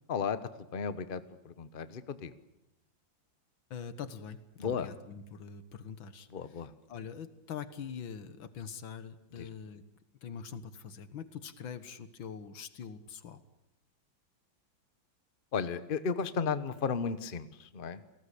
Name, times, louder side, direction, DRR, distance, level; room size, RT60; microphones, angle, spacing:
voice 1, 0.7-2.3 4.6-4.9 6.3-6.7 9.4-9.5 15.5-18.0, left 6 dB, 35° left, 12 dB, 1.1 m, -34 dB
voice 2, 3.7-6.3 6.9-9.8 10.2-13.4, left 7 dB, 90° left, 12 dB, 2.2 m, -43 dB
30.0 x 19.0 x 8.5 m, 0.89 s
omnidirectional pair, 2.1 m